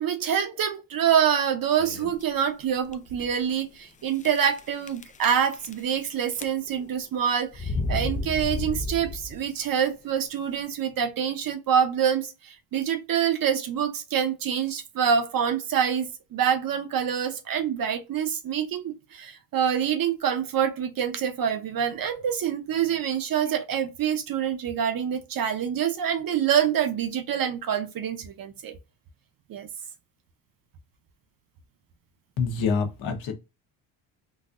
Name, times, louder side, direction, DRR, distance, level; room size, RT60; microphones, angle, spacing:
voice 1, 0.0-28.8 29.5-29.7, right 8 dB, 50° right, 0.7 m, -26 dB
sound 1, 1.8-2.2 2.9-3.0 3.2-3.3 4.2-4.6 4.9-6.0 6.3-6.9 7.5-9.5, left 2 dB, 20° left, 0.4 m, -31 dB
voice 2, 32.4-33.3, left 5 dB, 80° left, 1.2 m, -26 dB
4.0 x 2.5 x 2.5 m
cardioid pair, 95°, 46 cm